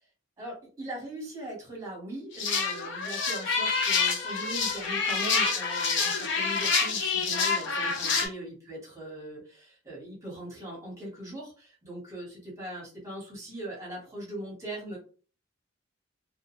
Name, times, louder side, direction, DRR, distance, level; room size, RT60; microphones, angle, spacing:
voice 1, 0.4-15.0, right 1 dB, 15° right, -3 dB, 1.0 m, -40 dB
sound 1, 2.3-8.3, left 5 dB, 60° left, 0.5 m, -27 dB
2.2 x 2.1 x 3.0 m, 0.38 s
head